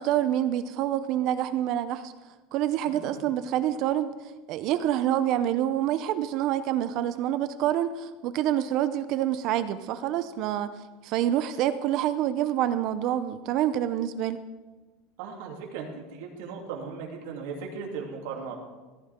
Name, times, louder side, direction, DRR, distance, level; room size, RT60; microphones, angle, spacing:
voice 1, 0.0-2.1 2.5-4.1 4.5-10.7 11.0-14.4, right 11 dB, 40° right, 12 dB, 0.5 m, -27 dB
voice 2, 2.9-3.2 15.2-18.6, right 5 dB, 70° right, 0 dB, 2.8 m, -37 dB
15.0 x 14.5 x 3.6 m, 1.2 s
cardioid pair, 180°, 0 cm